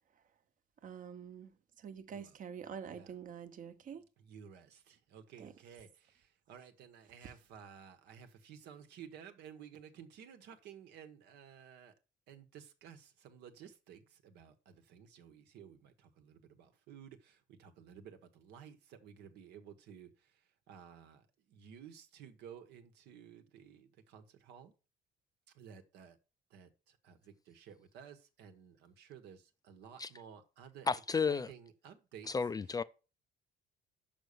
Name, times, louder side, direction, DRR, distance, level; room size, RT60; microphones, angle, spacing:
voice 1, 0.8-4.0 5.4-5.5 7.2-7.3, right 7 dB, 50° right, 1.1 m, -47 dB
voice 2, 4.2-11.9 12.3-24.7 25.5-26.2 26.5-30.9 31.3-32.3, right 8 dB, 80° right, 1.3 m, -54 dB
voice 3, 30.9-31.5 32.3-32.8, left 5 dB, 20° left, 0.4 m, -32 dB
6.2 x 5.4 x 6.8 m
cardioid pair, 110°, 17 cm